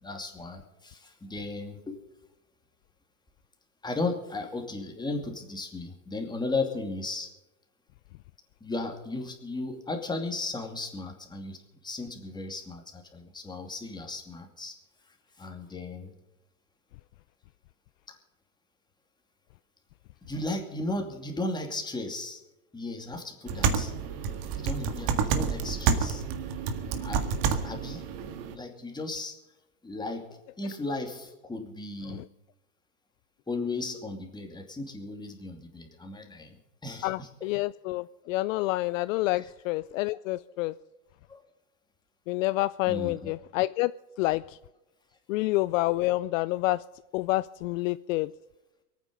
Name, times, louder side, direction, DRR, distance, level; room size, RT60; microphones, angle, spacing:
voice 1, 0.0-2.0 3.8-7.3 8.6-11.6 11.8-14.7 15.1-16.1 18.1-18.2 20.3-22.4 22.7-23.9 24.6-26.2 27.0-27.3 27.6-28.0 28.5-29.3 29.8-30.3 30.6-32.3 33.5-37.5 39.3-39.5 41.3-41.4 42.9-43.3, left 2 dB, 10° left, 3 dB, 2.6 m, -35 dB
sound 1, 23.5-28.5, right 6 dB, 50° right, 1.8 m, -29 dB
voice 2, 37.0-40.7 42.3-43.9 44.2-44.4 45.3-46.8 47.1-48.3, left 19 dB, 60° left, 16 dB, 0.5 m, -28 dB
23.5 x 9.4 x 5.3 m, 0.99 s
supercardioid pair, 125°, 45 cm